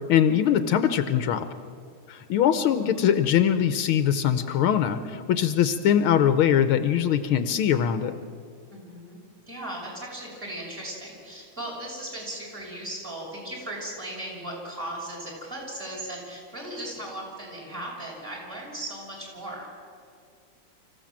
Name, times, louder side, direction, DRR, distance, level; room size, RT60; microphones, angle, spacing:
voice 1, 0.1-1.5 2.1-8.1, left 9 dB, 75° left, 11 dB, 1.6 m, -22 dB
voice 2, 2.7-3.1 8.7-19.7, right 1 dB, 25° right, -1 dB, 6.1 m, -37 dB
25.5 x 15.0 x 7.5 m, 2.2 s
omnidirectional pair, 2.4 m